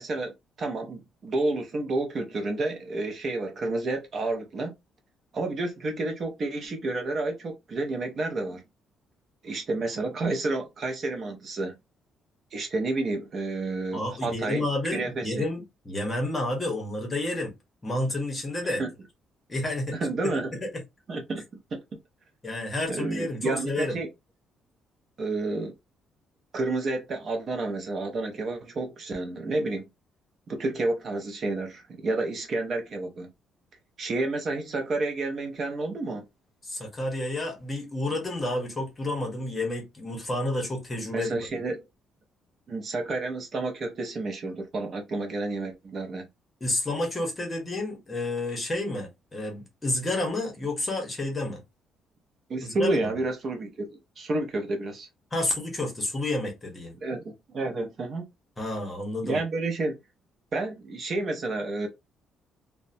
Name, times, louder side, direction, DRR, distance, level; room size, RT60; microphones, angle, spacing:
voice 1, 0.0-4.7 5.3-8.6 9.4-11.8 12.5-15.5 18.6-18.9 19.9-20.5 21.1-21.4 21.7-21.8 22.9-24.1 25.2-25.7 26.5-29.8 30.5-33.3 34.0-36.2 41.1-41.8 42.7-46.3 52.5-53.9 54.2-55.1 57.0-58.3 59.2-60.0 60.5-61.9, right 2 dB, 40° right, 0.5 m, -30 dB
voice 2, 13.9-17.5 17.8-18.8 19.5-20.0 20.2-20.3 20.6-20.7 22.4-24.0 36.6-41.5 46.6-51.6 52.6-53.2 55.3-56.9 58.6-59.4, left 2 dB, 20° left, 0.9 m, -30 dB
2.8 x 2.1 x 2.5 m
cardioid pair, 150°, 0 cm